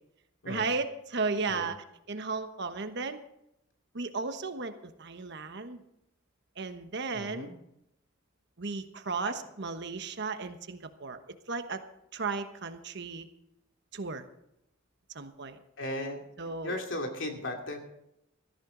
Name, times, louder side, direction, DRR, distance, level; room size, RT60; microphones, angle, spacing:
voice 1, 0.5-1.8 2.1-3.2 3.9-5.8 6.6-7.5 8.6-11.2 11.5-11.8 12.1-13.3 13.9-14.3 15.1-15.6 16.4-16.8, right 4 dB, 55° right, 8 dB, 1.2 m, -35 dB
voice 2, 7.1-7.5 9.2-9.4 15.8-17.8, left 1 dB, 65° left, 2 dB, 2.7 m, -36 dB
16.5 x 14.0 x 3.9 m, 0.79 s
head